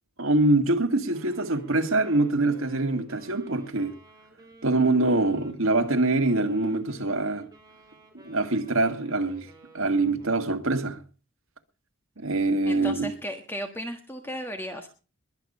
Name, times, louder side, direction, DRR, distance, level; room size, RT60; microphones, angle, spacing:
voice 1, 0.2-3.9 4.6-7.5 8.2-9.5 9.7-11.0 12.2-13.1, right 2 dB, 75° right, 1.8 m, -24 dB
Wind instrument woodwind instrument, 1.1-10.7, equal, 20° right, 4.8 m, -53 dB
voice 2, 12.6-14.9, equal, 10° left, 1.4 m, -35 dB
22.0 x 8.6 x 5.4 m
head